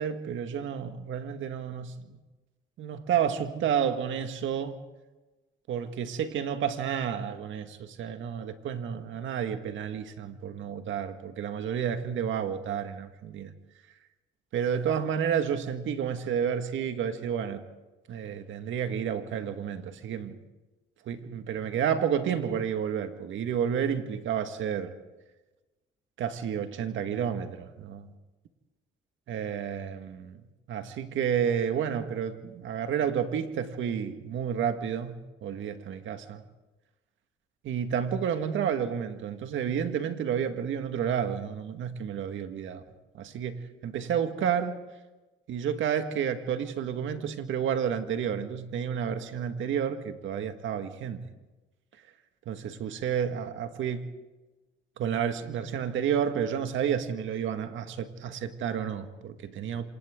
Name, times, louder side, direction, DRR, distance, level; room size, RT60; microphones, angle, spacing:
voice 1, 0.0-2.0 2.8-4.8 5.7-13.5 14.5-17.6 18.1-20.4 21.1-24.9 26.2-28.1 29.3-30.4 30.7-36.4 37.6-42.8 43.1-44.8 45.5-51.3 52.5-54.1 55.0-59.8, right 8 dB, 75° right, 1.8 m, -30 dB
28.0 x 27.0 x 3.8 m
cardioid pair, 90°, 20 cm